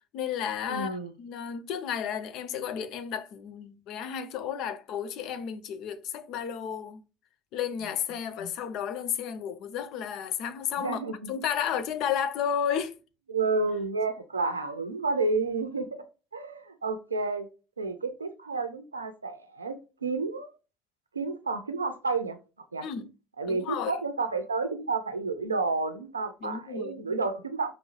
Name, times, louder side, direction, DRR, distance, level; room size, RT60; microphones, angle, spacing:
voice 1, 0.1-7.0 7.5-11.0 11.3-13.0 22.8-23.1 23.5-24.0 26.4-27.1, left 8 dB, 55° left, 0.5 m, -32 dB
voice 2, 0.7-1.1 10.8-11.3 13.3-16.0 16.3-17.5 17.8-20.5 21.1-22.4 22.7-22.9 23.4-27.7, right 3 dB, 85° right, 0.5 m, -30 dB
5.3 x 2.7 x 3.2 m
figure-of-eight pair, 55°, 0 cm